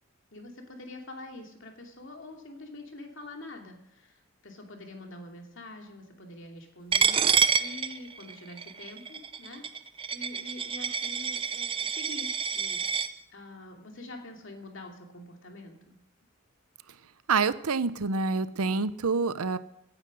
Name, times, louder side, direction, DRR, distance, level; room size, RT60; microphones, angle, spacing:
voice 1, 0.3-7.2 7.6-9.6 10.1-12.8 13.3-16.0, left 2 dB, 55° left, 2 dB, 2.8 m, -45 dB
Coin (dropping), 6.9-13.1, right 6 dB, 25° right, 0.6 m, -28 dB
voice 2, 17.3-19.6, right 4 dB, 85° right, 15 dB, 0.8 m, -27 dB
17.5 x 9.8 x 6.3 m, 0.79 s
head